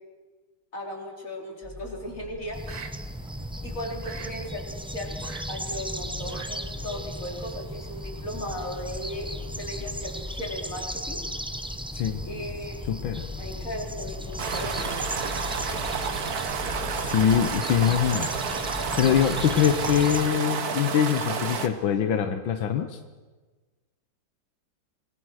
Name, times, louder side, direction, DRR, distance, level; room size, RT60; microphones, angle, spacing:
voice 1, 0.7-2.6 3.6-5.2 5.5-11.2 12.2-12.8 13.4-14.9, left 1 dB, 45° left, 0 dB, 4.5 m, -36 dB
sound 1, 1.6-19.6, left 4 dB, 10° left, 0.9 m, -42 dB
sound 2, 2.5-20.3, equal, 10° right, 0.3 m, -37 dB
sound 3, 2.7-2.9 3.3-3.4 3.8-4.3 5.2-5.5 5.7-5.8 6.2-6.5 6.8-6.9 7.5-7.6 10.4-10.7 11.1-11.2 14.1-21.7, right 6 dB, 55° right, 1.8 m, -31 dB
voice 2, 12.9-13.3 17.0-18.3 19.0-23.0, left 9 dB, 85° left, 8 dB, 1.8 m, -23 dB
27.5 x 20.0 x 6.4 m, 1.3 s
omnidirectional pair, 2.0 m